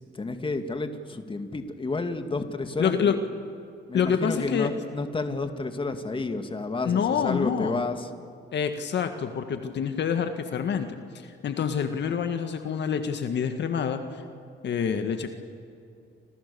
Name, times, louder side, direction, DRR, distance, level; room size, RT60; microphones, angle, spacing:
voice 1, 0.1-3.2 3.9-8.1, left 3 dB, 25° left, 7 dB, 2.2 m, -31 dB
voice 2, 2.8-3.2 3.9-4.7 6.9-7.8 8.5-14.2 14.6-15.3, left 7 dB, 60° left, 7 dB, 1.9 m, -27 dB
29.5 x 27.5 x 7.1 m, 2.5 s
cardioid pair, 90°, 20 cm